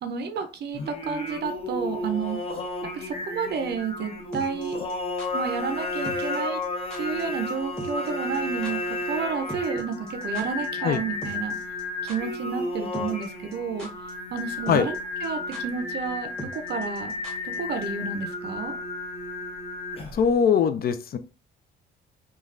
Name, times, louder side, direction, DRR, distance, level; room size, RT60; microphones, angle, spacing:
voice 1, 0.0-2.4 2.8-4.8 5.3-6.6 7.0-8.8 9.0-11.5 12.0-17.1 17.4-18.8, right 6 dB, 55° right, 7 dB, 0.5 m, -31 dB
Singing, 0.7-20.3, left 2 dB, 30° left, 0.9 m, -32 dB
sound 1, 4.3-5.3 6.0-6.4 6.6-6.7 6.9-7.2 7.5-7.6 7.8-8.1 8.3-8.4 8.6-8.7 9.5-10.7 10.9-11.0 11.2-11.8 12.1-12.2 12.9-13.3 13.5-14.1 14.4-14.5 14.7-15.0 15.2-15.3 15.5-15.6 16.4-17.6 17.8-17.9, left 1 dB, 5° left, 1.2 m, -40 dB
voice 2, 20.1-21.2, left 7 dB, 50° left, 11 dB, 0.4 m, -21 dB
3.2 x 2.3 x 2.4 m, 0.35 s
cardioid pair, 90°, 20 cm